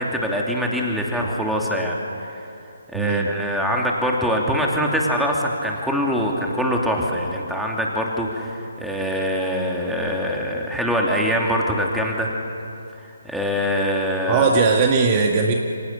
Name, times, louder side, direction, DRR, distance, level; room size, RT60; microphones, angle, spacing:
voice 1, 0.0-2.0 2.3-2.5 2.9-12.3 13.2-14.5, equal, ahead, -1 dB, 3.0 m, -23 dB
voice 2, 2.9-3.3 14.3-15.5, right 4 dB, 30° right, 2 dB, 1.9 m, -19 dB
29.0 x 25.5 x 7.0 m, 2.7 s
figure-of-eight pair, 145°, 0 cm